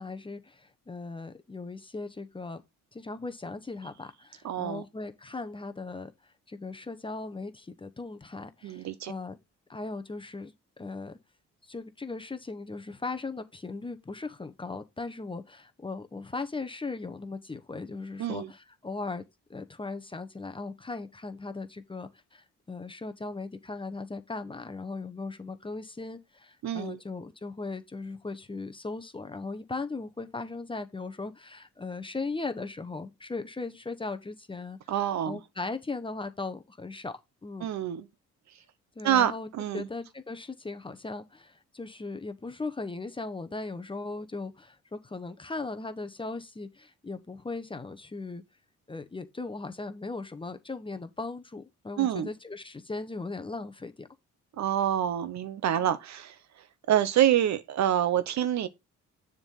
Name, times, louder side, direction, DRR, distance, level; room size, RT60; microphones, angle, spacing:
voice 1, 0.0-2.6 2.9-6.1 6.5-9.4 9.7-10.5 10.8-11.2 11.7-34.8 35.3-37.7 39.0-39.5 39.7-48.4 48.9-54.1, left 3 dB, 15° left, 0.8 m, -38 dB
voice 2, 4.4-4.8 8.6-9.1 18.2-18.5 26.6-27.0 34.9-35.4 37.6-38.1 39.0-39.9 52.0-52.3 54.5-58.7, right 11 dB, 65° right, 0.8 m, -27 dB
7.0 x 3.7 x 5.5 m
cardioid pair, 90°, 30 cm